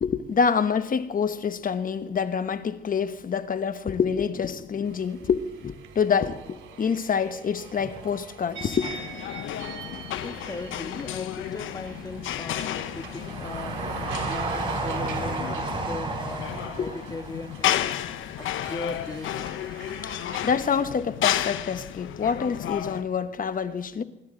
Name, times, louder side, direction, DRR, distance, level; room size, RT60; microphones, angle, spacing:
voice 1, 0.0-8.9 16.7-16.9 20.0-20.1 20.4-24.0, left 6 dB, 45° left, 1.1 m, -26 dB
sound 1, 4.8-20.6, right 6 dB, 90° right, 3.0 m, -42 dB
Train, 7.7-8.9 9.4-10.3 10.8-19.6 19.9-20.0, right 2 dB, 25° right, 4.3 m, -35 dB
sound 2, 8.6-23.0, left 12 dB, 85° left, 1.0 m, -32 dB
voice 2, 10.2-13.8 14.2-17.9 18.4-19.5, left 3 dB, 20° left, 1.6 m, -38 dB
24.5 x 12.0 x 3.8 m
cardioid pair, 90°, 20 cm